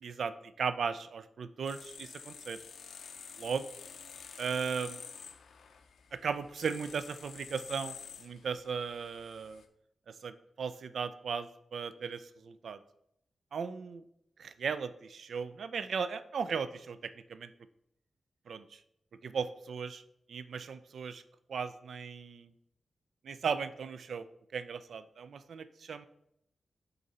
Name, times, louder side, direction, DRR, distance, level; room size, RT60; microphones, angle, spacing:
voice 1, 0.0-2.6 3.4-3.6 4.4-5.0 6.2-9.6 10.1-12.8 13.5-14.0 14.4-17.5 18.5-18.8 19.2-20.0 20.3-21.2 21.5-22.5 23.2-24.3 24.5-26.1, right 6 dB, 75° right, 12 dB, 0.4 m, -37 dB
sound 1, 1.6-9.6, left 6 dB, 80° left, 0.5 m, -49 dB
6.6 x 3.9 x 4.1 m, 0.77 s
wide cardioid pair, 120°, 0 cm